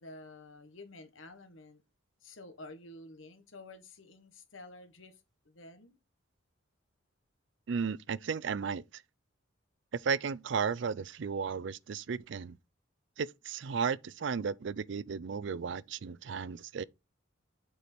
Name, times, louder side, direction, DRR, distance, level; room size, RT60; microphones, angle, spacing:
voice 1, 0.0-1.8 2.2-6.0, left 2 dB, 80° left, 1.4 m, -51 dB
voice 2, 7.7-9.0 9.9-12.6 13.2-16.8, right 6 dB, 65° right, 0.4 m, -34 dB
8.2 x 4.7 x 4.3 m
head